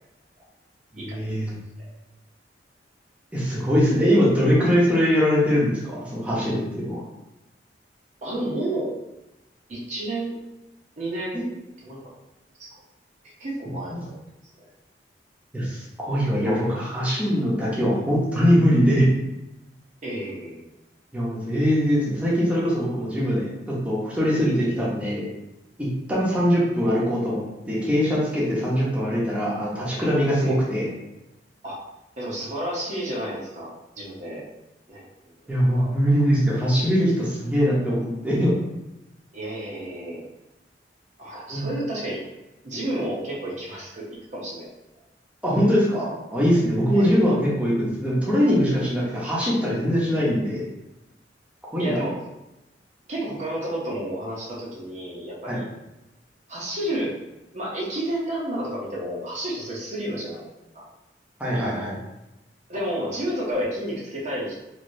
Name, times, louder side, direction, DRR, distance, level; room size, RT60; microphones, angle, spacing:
voice 1, 0.9-1.6 3.3-7.0 11.3-11.5 13.9-14.0 15.5-19.1 21.1-25.2 25.8-30.9 35.5-38.5 41.5-41.7 45.4-50.7 51.7-52.0 55.5-55.6 61.4-62.0, equal, 10° right, -7 dB, 0.8 m, -22 dB
voice 2, 8.2-8.9 9.7-10.4 11.0-11.4 11.8-12.1 12.6-12.7 13.2-14.1 20.0-20.6 30.4-30.6 31.6-31.8 32.2-34.4 34.9-35.1 35.4-35.9 39.3-40.2 41.2-42.2 42.6-44.7 46.9-47.2 51.8-52.1 53.1-55.7 56.5-57.1 57.5-60.5 60.7-60.8 62.7-64.6, right 1 dB, 45° right, -5 dB, 0.8 m, -31 dB
3.1 x 2.7 x 2.6 m, 0.96 s
head